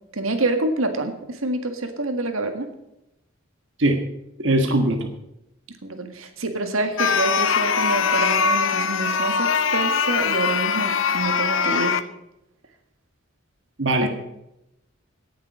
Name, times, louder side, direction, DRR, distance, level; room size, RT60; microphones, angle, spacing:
voice 1, 0.1-2.7 5.8-12.0 14.0-14.1, right 2 dB, 85° right, 6 dB, 1.8 m, -27 dB
voice 2, 4.4-5.1 13.8-14.1, right 1 dB, 60° right, 3 dB, 1.6 m, -20 dB
sound 1, 7.0-12.0, left 6 dB, 75° left, 0.8 m, -22 dB
18.0 x 7.4 x 6.2 m, 0.87 s
head